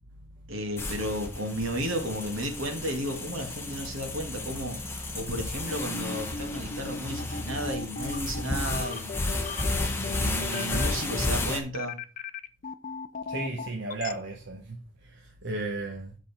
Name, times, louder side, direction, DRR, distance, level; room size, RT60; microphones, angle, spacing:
voice 1, 0.5-9.2 10.1-12.0, equal, 75° right, 2.1 m, -33 dB
sound 1, 0.8-11.6, left 2 dB, 10° left, 1.3 m, -33 dB
sound 2, 5.7-14.1, left 4 dB, 40° left, 0.5 m, -36 dB
voice 2, 13.3-16.2, right 2 dB, 60° right, 1.0 m, -35 dB
8.0 x 6.1 x 4.3 m
head